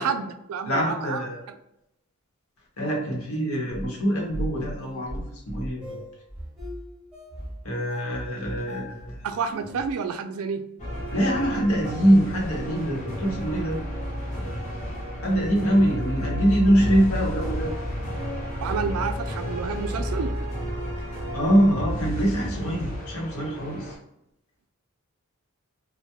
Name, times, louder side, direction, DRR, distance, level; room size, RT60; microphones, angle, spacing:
voice 1, 0.0-1.2 9.2-10.6 18.6-20.3, right 6 dB, 80° right, 9 dB, 0.3 m, -29 dB
voice 2, 0.7-1.4 2.8-6.0 7.6-9.3 11.1-13.8 15.2-17.7 21.3-23.9, equal, 90° left, -2 dB, 0.9 m, -24 dB
sound 1, 3.7-9.9, equal, 5° right, 0.6 m, -38 dB
sound 2, 10.8-23.9, equal, 35° left, 0.7 m, -31 dB
2.2 x 2.1 x 2.8 m, 0.82 s
head